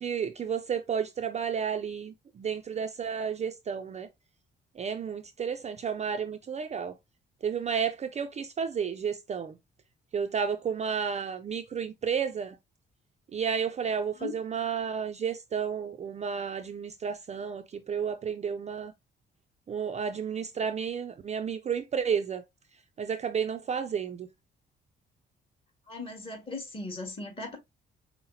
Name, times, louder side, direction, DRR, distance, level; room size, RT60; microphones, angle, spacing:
voice 1, 0.0-4.1 4.8-7.0 7.4-9.6 10.1-12.6 13.3-18.9 19.7-22.4 23.0-24.3, right 7 dB, 35° right, 0.4 m, -32 dB
voice 2, 25.9-27.6, left 3 dB, 25° left, 1.6 m, -38 dB
5.5 x 2.0 x 2.7 m
cardioid pair, 90°, 20 cm